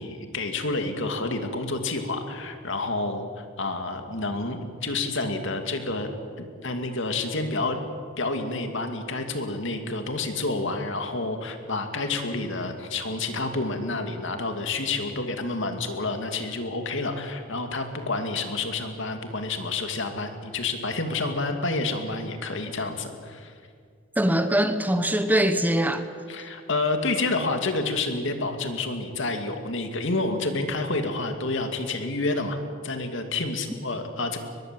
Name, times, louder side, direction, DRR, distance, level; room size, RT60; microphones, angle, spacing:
voice 1, 0.0-6.1 6.4-7.8 8.2-23.5 26.3-32.6 32.8-34.4, left 3 dB, 65° left, 2.5 m, -29 dB
voice 2, 24.2-26.0, right 1 dB, 10° right, 1.0 m, -22 dB
22.5 x 21.5 x 7.8 m
head